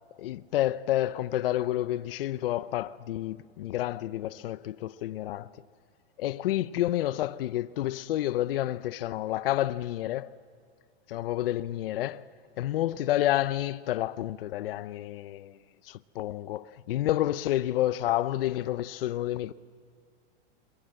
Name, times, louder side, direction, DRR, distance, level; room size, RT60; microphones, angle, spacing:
voice 1, 0.2-5.5 6.2-10.4 11.1-12.3 12.6-15.6 15.8-19.5, left 14 dB, 60° left, 0.6 m, -29 dB
28.5 x 22.5 x 7.7 m
hypercardioid pair, 160°, 33 cm